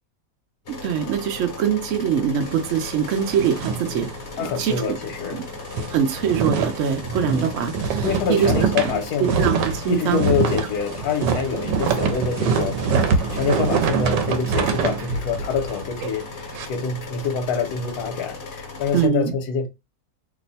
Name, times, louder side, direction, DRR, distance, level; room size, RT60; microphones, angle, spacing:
sound 1, 0.7-19.1, left 4 dB, 45° left, 1.0 m, -37 dB
voice 1, 0.7-4.8 5.3-5.4 5.9-8.5 9.2-10.2 18.9-19.3, right 8 dB, 65° right, 0.7 m, -23 dB
sound 2, 2.4-4.7 5.0-5.2 5.5-16.7, right 5 dB, 80° right, 1.2 m, -25 dB
voice 2, 4.4-5.4 5.8-5.9 7.2-7.5 8.0-9.3 9.9-12.8 13.3-19.7, left 6 dB, 65° left, 1.2 m, -26 dB
3.0 x 2.1 x 3.9 m
omnidirectional pair, 1.9 m